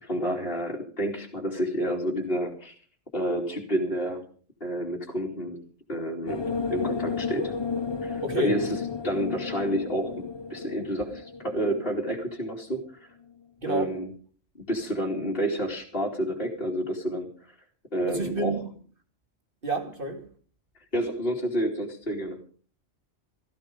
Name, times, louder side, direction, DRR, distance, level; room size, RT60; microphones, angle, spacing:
voice 1, 0.0-2.7 3.1-4.2 4.6-5.6 5.9-6.4 6.7-7.5 8.0-8.7 9.0-12.8 13.7-14.1 14.6-17.3 17.9-18.6 20.9-22.5, right 1 dB, 45° left, 3.2 m, -29 dB
sound 1, 6.3-12.6, left 5 dB, 25° left, 0.6 m, -33 dB
voice 2, 8.2-8.6 13.6-14.0 18.1-18.6 19.6-20.2, right 1 dB, 40° right, 2.9 m, -29 dB
16.0 x 15.5 x 5.3 m
omnidirectional pair, 1.3 m